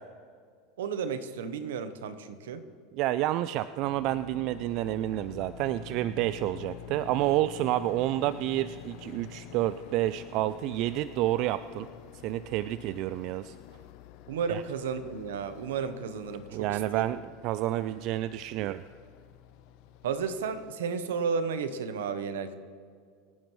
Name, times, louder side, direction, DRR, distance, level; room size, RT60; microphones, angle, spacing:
voice 1, 0.8-2.7 14.3-17.0 20.0-22.5, right 6 dB, 85° right, 11 dB, 0.9 m, -33 dB
voice 2, 3.0-11.9 12.2-13.5 14.5-14.6 16.5-17.2 17.4-18.8, right 14 dB, 55° right, 14 dB, 0.3 m, -29 dB
sound 1, 3.8-20.7, left 10 dB, 65° left, 0.8 m, -48 dB
25.5 x 9.0 x 3.2 m, 2.1 s
supercardioid pair, 110°, 0 cm